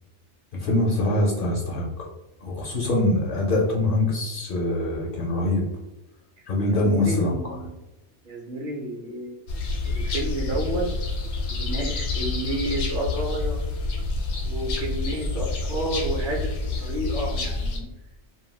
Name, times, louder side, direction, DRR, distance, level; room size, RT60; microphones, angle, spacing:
voice 1, 0.5-2.1 2.4-5.6 6.5-7.3 15.4-15.5, left 1 dB, 60° left, -2 dB, 0.6 m, -24 dB
voice 2, 6.7-7.8 8.2-9.3 9.9-10.8 11.5-13.6 14.4-16.5 16.8-17.9, right 1 dB, 55° right, -1 dB, 0.7 m, -30 dB
sound 1, 9.5-17.8, left 3 dB, 75° left, 0.9 m, -28 dB
2.3 x 2.2 x 3.2 m, 0.99 s
omnidirectional pair, 1.2 m